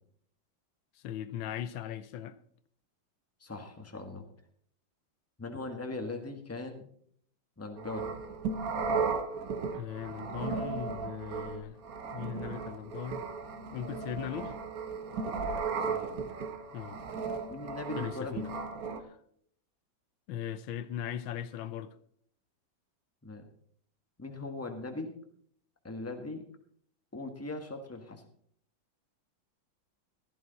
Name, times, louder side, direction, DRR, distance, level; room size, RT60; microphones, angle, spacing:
voice 1, 0.9-2.4 9.6-11.8 12.1-13.2 13.7-14.6 16.7-17.0 18.0-18.5 19.0-19.2 20.3-22.0, left 10 dB, 85° left, 1.5 m, -39 dB
voice 2, 3.4-4.2 5.4-6.9 7.6-8.2 15.9-16.1 17.5-18.8 23.2-23.4 24.2-25.1 25.8-26.4 27.1-28.2, left 2 dB, 10° left, 1.4 m, -40 dB
vinyl transients going through kaivo, 7.8-19.0, right 5 dB, 50° right, 1.4 m, -35 dB
15.5 x 12.5 x 4.1 m
omnidirectional pair, 2.1 m